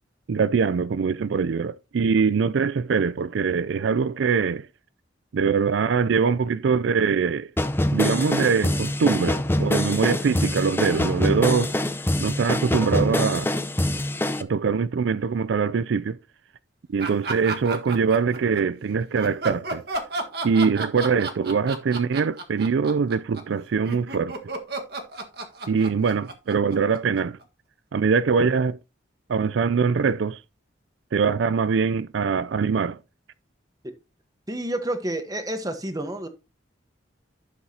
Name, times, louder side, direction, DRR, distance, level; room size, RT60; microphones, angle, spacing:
voice 1, 0.3-4.7 5.3-7.5 7.9-11.7 12.2-13.5 14.4-16.2 16.9-19.8 20.4-24.4 25.7-27.4 27.9-28.8 29.3-30.4 31.1-33.0, right 5 dB, 70° right, 0.4 m, -23 dB
sound 1, 7.6-14.4, left 1 dB, 10° left, 0.6 m, -25 dB
sound 2, 17.0-18.6 19.2-27.4, right 2 dB, 55° right, 1.6 m, -32 dB
voice 2, 34.5-36.3, right 1 dB, 20° right, 1.2 m, -29 dB
11.5 x 7.3 x 2.8 m
head